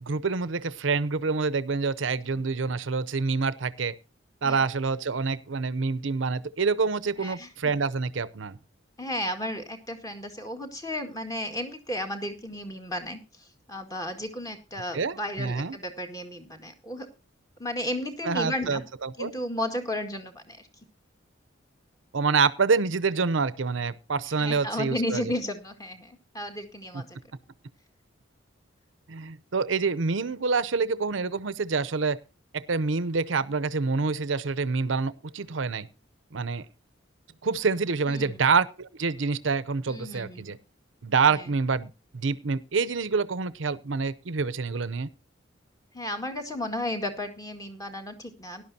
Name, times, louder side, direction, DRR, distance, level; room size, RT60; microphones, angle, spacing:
voice 1, 0.0-3.9 4.4-8.6 14.9-15.8 18.2-19.3 22.1-25.2 26.9-27.0 29.1-32.2 32.5-35.9 36.3-36.7 37.4-40.6 41.0-45.1, right 4 dB, 75° right, 16 dB, 0.7 m, -27 dB
voice 2, 7.2-7.7 9.0-17.1 17.6-18.8 19.2-20.6 24.4-27.2 38.1-38.4 39.9-40.6 41.3-41.5 45.9-48.6, left 1 dB, 20° left, 5 dB, 1.9 m, -34 dB
18.0 x 11.5 x 2.8 m, 0.29 s
head